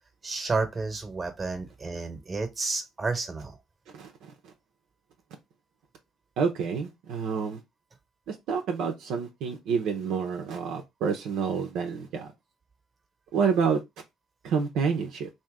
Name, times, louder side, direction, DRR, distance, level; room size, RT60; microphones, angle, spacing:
voice 1, 0.2-3.6, right 3 dB, 30° right, 1.2 m, -31 dB
voice 2, 3.9-4.5 6.4-7.6 8.3-12.3 13.3-13.8 14.4-15.3, right 6 dB, 70° right, 0.8 m, -28 dB
2.8 x 2.8 x 3.6 m
supercardioid pair, 65°, 0 cm